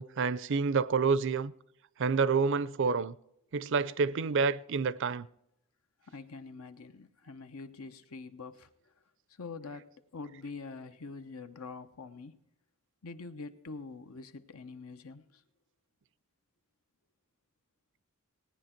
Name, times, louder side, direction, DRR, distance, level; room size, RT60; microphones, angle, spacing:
voice 1, 0.0-1.5 2.0-3.1 3.5-5.3, right 5 dB, 60° right, 0.5 m, -28 dB
voice 2, 6.1-8.7 9.4-12.4 13.0-15.4, left 4 dB, 80° left, 0.9 m, -45 dB
17.5 x 10.0 x 4.5 m
head